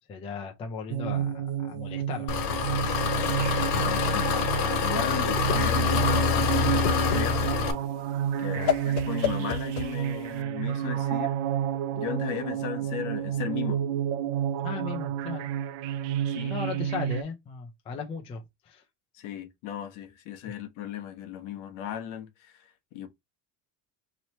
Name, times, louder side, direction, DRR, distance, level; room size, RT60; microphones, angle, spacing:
voice 1, 0.1-2.3 8.5-8.7 14.6-15.5 16.5-18.8, left 5 dB, 15° left, 0.3 m, -37 dB
sound 1, 0.9-17.2, right 10 dB, 85° right, 0.5 m, -30 dB
Engine, 2.3-7.7, left 7 dB, 70° left, 1.3 m, -26 dB
voice 2, 3.7-4.3 4.8-7.6 8.4-11.4 11.9-13.8 16.3-16.5 19.1-23.1, left 9 dB, 55° left, 0.9 m, -36 dB
Whoosh swoosh swish, 5.3-10.4, left 10 dB, 90° left, 0.8 m, -32 dB
3.1 x 2.9 x 4.1 m
cardioid pair, 180°, 37 cm